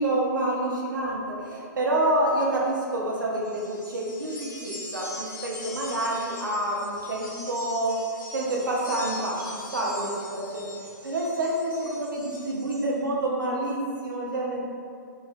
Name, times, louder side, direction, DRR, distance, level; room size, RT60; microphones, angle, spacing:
voice 1, 0.0-8.0 8.3-10.7 11.0-14.6, right 1 dB, 75° right, -4 dB, 0.8 m, -28 dB
sound 1, 3.4-12.9, left 1 dB, 80° left, 1.0 m, -42 dB
3.1 x 2.5 x 3.6 m, 2.3 s
figure-of-eight pair, 120°, 11 cm